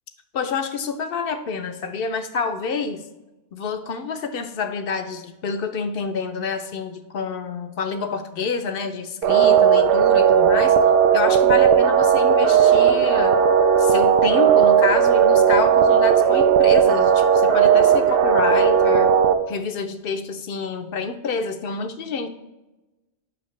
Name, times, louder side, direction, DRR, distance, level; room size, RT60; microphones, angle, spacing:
voice 1, 0.3-3.1 3.5-10.8 11.1-13.4 13.8-19.1 19.5-22.3, left 5 dB, 60° left, 9 dB, 0.7 m, -28 dB
sound 1, 9.2-19.3, right 8 dB, 60° right, 0.6 m, -16 dB
8.3 x 5.9 x 3.1 m, 1.1 s
omnidirectional pair, 1.2 m